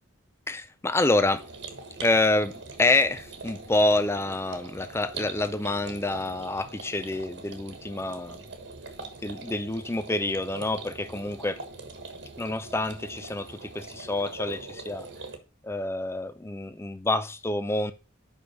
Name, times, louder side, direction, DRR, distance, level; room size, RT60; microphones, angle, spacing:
voice 1, 0.5-1.5 2.0-8.4 9.2-11.6 12.4-15.1 15.6-17.9, left 2 dB, 10° left, 0.4 m, -27 dB
sound 1, 1.3-15.4, right 3 dB, 55° right, 1.3 m, -42 dB
5.5 x 5.5 x 5.9 m
head